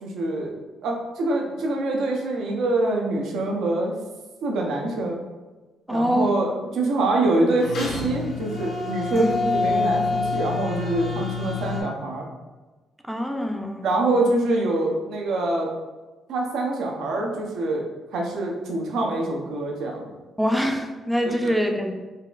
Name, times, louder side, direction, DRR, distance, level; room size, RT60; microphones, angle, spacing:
voice 1, 0.0-4.0 4.4-5.2 5.9-12.3 13.8-15.7 16.3-17.8 18.1-20.1 21.4-21.5, right 2 dB, 80° right, 0 dB, 0.6 m, -25 dB
voice 2, 5.9-6.3 9.1-9.3 13.1-13.8 20.4-21.9, equal, 5° right, 4 dB, 0.4 m, -24 dB
sound 1, 7.6-11.8, left 4 dB, 65° left, 0.7 m, -27 dB
4.0 x 2.3 x 2.3 m, 1.2 s
cardioid pair, 90°, 0 cm